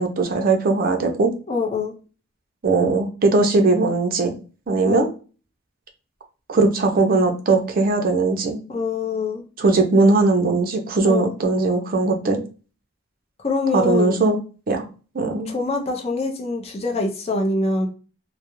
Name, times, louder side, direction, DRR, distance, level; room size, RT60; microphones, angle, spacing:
voice 1, 0.0-1.3 2.6-4.4 4.7-5.1 6.5-8.6 9.6-12.4 13.7-14.4 14.7-14.8 15.1-15.5, right 3 dB, 50° right, 4 dB, 0.5 m, -19 dB
voice 2, 1.5-1.9 4.8-5.1 8.7-9.4 11.0-11.3 13.4-14.2 15.5-17.9, left 3 dB, 35° left, 2 dB, 0.5 m, -24 dB
2.3 x 2.0 x 2.9 m, 0.35 s
head